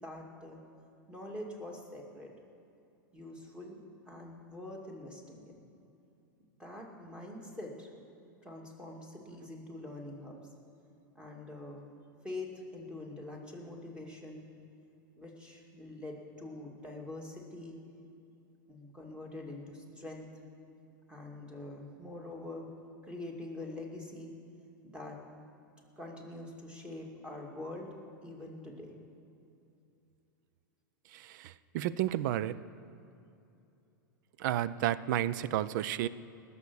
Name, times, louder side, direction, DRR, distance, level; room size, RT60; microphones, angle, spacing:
voice 1, 0.0-0.6 1.1-2.3 3.1-3.8 4.1-5.6 6.6-7.9 8.4-10.4 11.1-11.9 12.2-14.4 15.2-17.8 18.7-20.3 21.1-22.7 23.0-24.3 24.8-25.2 26.0-27.9 28.2-28.9, left 2 dB, 10° right, 0 dB, 2.5 m, -44 dB
voice 2, 31.1-32.6 34.4-36.1, right 12 dB, 60° right, 17 dB, 0.5 m, -32 dB
19.5 x 7.1 x 6.4 m, 2.7 s
hypercardioid pair, 110°, 11 cm